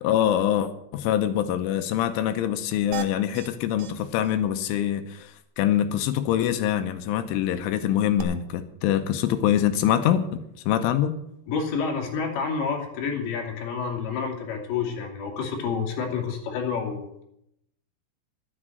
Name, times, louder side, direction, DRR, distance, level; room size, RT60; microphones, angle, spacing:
voice 1, 0.0-11.2, left 10 dB, 80° left, 9 dB, 3.2 m, -24 dB
sound 1, 2.9-3.5 3.8-3.9 4.2-4.4 4.7-4.8 8.2-8.3, right 12 dB, 80° right, 2.4 m, -35 dB
voice 2, 11.5-17.2, left 5 dB, 65° left, 1 dB, 4.4 m, -29 dB
12.0 x 10.0 x 7.6 m, 0.81 s
omnidirectional pair, 5.9 m